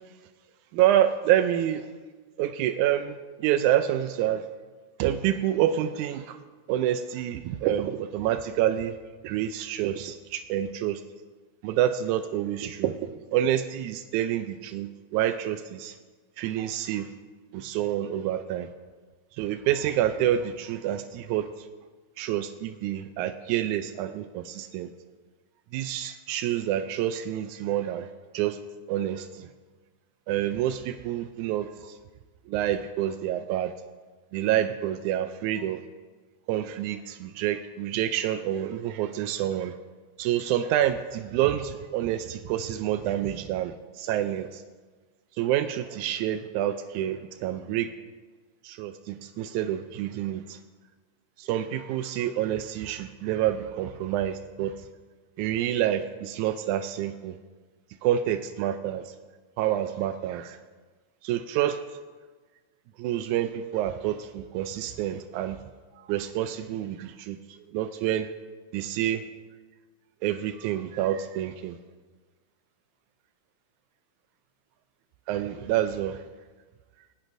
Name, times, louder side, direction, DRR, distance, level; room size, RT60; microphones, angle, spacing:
voice 1, 0.7-1.9 2.4-4.4 5.0-6.4 6.7-9.0 9.2-11.0 11.6-15.9 16.4-17.1 17.5-18.7 19.4-21.5 22.2-24.9 25.7-28.1 28.3-28.6 28.9-29.5 30.3-31.9 32.5-33.7 34.3-35.8 36.5-39.7 40.2-44.6 45.4-47.9 48.6-50.6 51.4-54.7 55.4-57.3 58.0-59.0 59.6-60.6 61.2-61.8 63.0-65.6 66.0-67.4 67.7-68.3 68.7-69.2 70.2-71.8 75.3-76.2, right 11 dB, 85° right, 9 dB, 1.7 m, -28 dB
19.0 x 17.0 x 2.6 m, 1.4 s
omnidirectional pair, 4.0 m